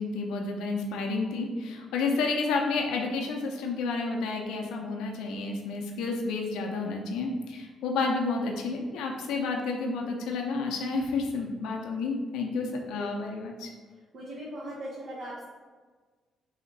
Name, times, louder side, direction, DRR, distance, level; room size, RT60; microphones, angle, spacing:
voice 1, 0.0-13.7, left 3 dB, 90° left, 1 dB, 0.5 m, -30 dB
voice 2, 14.1-15.4, right 1 dB, 55° right, -6 dB, 0.9 m, -39 dB
3.3 x 2.8 x 4.0 m, 1.4 s
cardioid pair, 90°, 0 cm